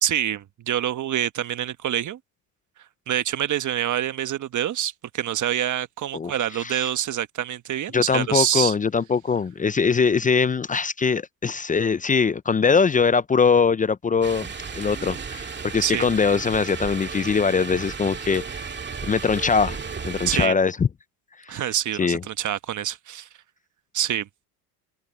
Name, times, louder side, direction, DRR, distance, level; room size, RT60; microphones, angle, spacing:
voice 1, 0.0-2.2 3.1-8.7 15.8-16.1 20.3-20.5 21.5-23.3 23.9-24.3, right 11 dB, 40° right, 1.3 m, -26 dB
voice 2, 6.1-6.9 7.9-18.7 19.0-19.8 20.0-20.9 21.5-21.6 22.0-22.2, left 5 dB, 20° left, 0.5 m, -22 dB
sound 1, 14.2-20.5, right 5 dB, 25° right, 2.0 m, -34 dB
open air
supercardioid pair, 90°, 45 cm